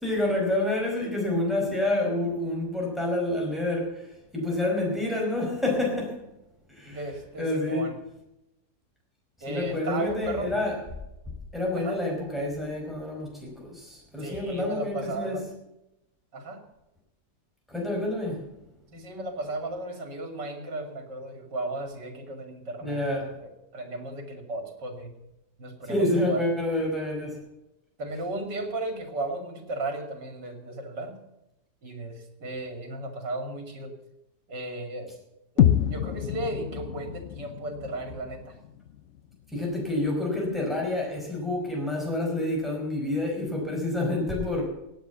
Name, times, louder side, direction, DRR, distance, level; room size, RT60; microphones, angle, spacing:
voice 1, 0.0-4.1 4.3-6.2 6.7-7.0 7.4-7.8 9.5-10.8 11.5-15.4 17.7-18.4 22.8-23.3 25.9-27.4 39.5-44.7, left 1 dB, ahead, -1 dB, 4.9 m, -28 dB
voice 2, 6.8-7.9 9.4-10.5 11.7-12.0 14.2-15.5 16.3-16.6 18.9-23.1 23.4-25.1 25.6-26.5 28.0-31.2 31.8-33.9 34.5-35.1 35.5-38.6, right 2 dB, 80° right, 5 dB, 3.2 m, -35 dB
sound 1, 35.6-39.6, left 10 dB, 60° left, 0.8 m, -27 dB
18.0 x 8.4 x 7.1 m, 0.92 s
omnidirectional pair, 1.8 m